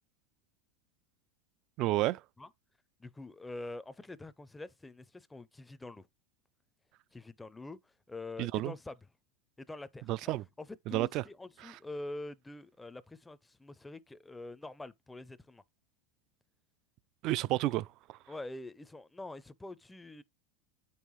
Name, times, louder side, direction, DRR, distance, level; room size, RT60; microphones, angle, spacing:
voice 1, 1.8-2.2 8.4-8.7 10.1-10.4 10.9-11.2 17.2-17.9, right 17 dB, 45° right, 0.4 m, -30 dB
voice 2, 3.0-6.1 7.1-9.0 9.6-15.6 18.3-20.2, left 2 dB, 10° left, 0.5 m, -45 dB
8.1 x 5.5 x 3.1 m
supercardioid pair, 130°, 0 cm